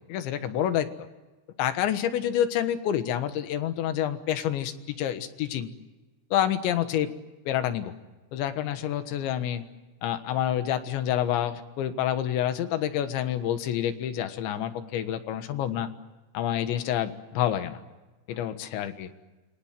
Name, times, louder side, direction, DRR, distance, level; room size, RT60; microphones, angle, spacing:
voice 1, 0.1-0.9 1.6-5.7 6.3-7.1 7.5-7.9 8.3-9.6 10.0-15.9 16.4-17.8 18.3-19.1, left 10 dB, 80° left, 9 dB, 3.7 m, -28 dB
28.0 x 24.0 x 7.5 m, 1.2 s
omnidirectional pair, 5.2 m